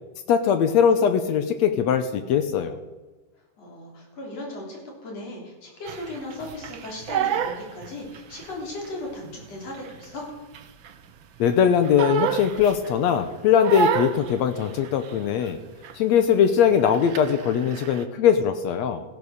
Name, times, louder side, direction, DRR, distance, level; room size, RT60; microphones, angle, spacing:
voice 1, 0.3-2.8 11.4-15.6 15.9-19.0, left 8 dB, 70° left, 9 dB, 2.0 m, -21 dB
voice 2, 3.6-10.3, left 2 dB, 55° left, -1 dB, 4.6 m, -37 dB
Crying sobbing, 5.9-8.5 8.8-11.1 11.4-13.1 13.6-15.6 15.8-16.2 16.4-18.0, right 8 dB, 90° right, 1.0 m, -29 dB
15.5 x 11.0 x 6.5 m, 1.2 s
omnidirectional pair, 3.5 m